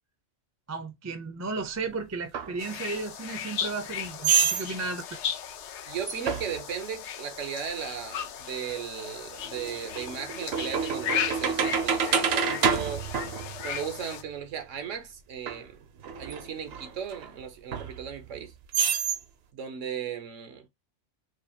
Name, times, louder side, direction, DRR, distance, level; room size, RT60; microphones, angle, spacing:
voice 1, 0.7-5.2, right 3 dB, 25° right, 0.3 m, -34 dB
sound 1, 2.3-2.5 4.2-4.7 6.1-6.6 8.7-8.8 9.4-14.0 15.5-15.6 16.0-17.3 17.7-18.4 18.7-19.2, right 7 dB, 65° right, 0.8 m, -28 dB
sound 2, 2.6-14.2, left 9 dB, 75° left, 0.9 m, -36 dB
voice 2, 5.9-13.0 13.6-15.8 16.2-18.5 19.5-20.7, right 8 dB, 85° right, 1.2 m, -36 dB
4.8 x 2.4 x 2.8 m
omnidirectional pair, 1.3 m